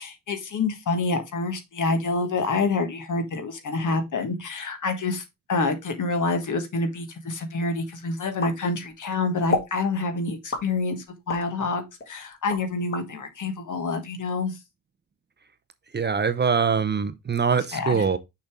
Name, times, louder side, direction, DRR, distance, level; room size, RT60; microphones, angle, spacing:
voice 1, 0.0-14.6 17.7-18.0, left 3 dB, 60° left, 1.6 m, -27 dB
sound 1, 8.4-9.1 9.5-9.8 10.5-11.5 12.0-13.1, left 4 dB, 35° left, 1.8 m, -30 dB
voice 2, 15.9-18.2, right 6 dB, 30° right, 0.5 m, -23 dB
6.5 x 5.1 x 3.5 m
wide cardioid pair, 165°, 34 cm